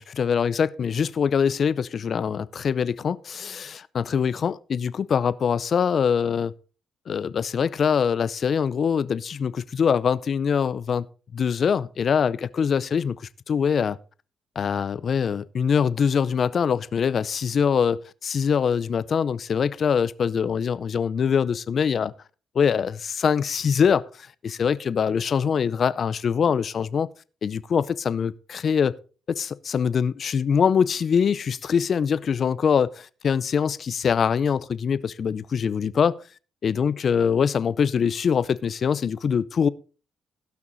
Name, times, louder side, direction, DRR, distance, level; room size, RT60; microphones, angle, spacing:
voice 1, 0.0-6.5 7.1-11.1 11.3-13.2 13.5-14.0 14.6-22.1 22.5-27.1 27.4-28.9 29.4-36.2 36.6-39.7, left 7 dB, 50° left, 0.5 m, -23 dB
17.0 x 6.0 x 4.0 m
cardioid pair, 90°, 0 cm